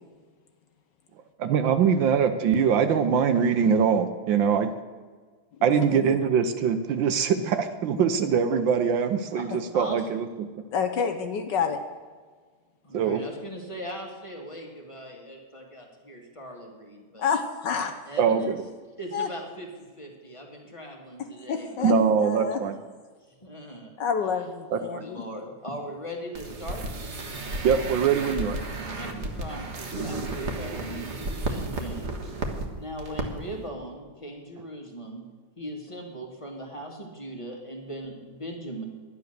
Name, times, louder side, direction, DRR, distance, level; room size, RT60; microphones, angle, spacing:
voice 1, 1.4-4.7 5.6-10.5 12.9-13.2 18.2-18.6 21.8-22.7 24.7-25.0 27.6-28.6, right 7 dB, 70° right, 9 dB, 1.4 m, -23 dB
voice 2, 5.7-6.2 10.7-11.8 17.2-17.9 19.1-19.3 21.5-22.6 24.0-25.2, left 6 dB, 65° left, 7 dB, 1.4 m, -28 dB
voice 3, 12.8-17.3 18.1-18.5 19.0-21.9 22.7-22.8 23.3-23.9 24.7-26.8 28.9-32.3 32.8-35.2 35.6-38.8, right 1 dB, 15° left, 1 dB, 1.8 m, -39 dB
sound 1, 26.3-32.7 33.0-33.2 33.5-33.6, right 2 dB, 40° right, 1.3 m, -33 dB
11.5 x 9.9 x 6.6 m, 1.5 s
omnidirectional pair, 2.3 m